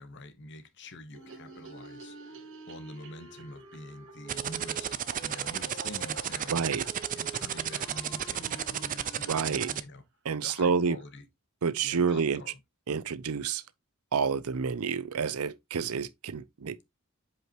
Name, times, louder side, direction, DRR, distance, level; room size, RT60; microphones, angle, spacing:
voice 1, 0.0-2.4 2.7-4.9 5.2-6.6 7.2-10.1 10.4-11.3 11.8-12.6, left 1 dB, 55° left, 1.1 m, -46 dB
sound 1, 1.1-9.8, right 3 dB, 25° left, 2.9 m, -49 dB
sound 2, 1.1-9.4 9.6-9.7 10.0-10.1 10.3-10.4 10.6-11.2, right 5 dB, 60° right, 1.3 m, -53 dB
sound 3, 4.3-9.8, right 9 dB, 35° right, 0.4 m, -32 dB
voice 2, 6.5-6.9 9.3-9.7 10.2-11.0 11.6-12.4 12.9-13.6 14.1-16.8, right 5 dB, 80° right, 0.6 m, -29 dB
7.9 x 4.8 x 3.0 m
head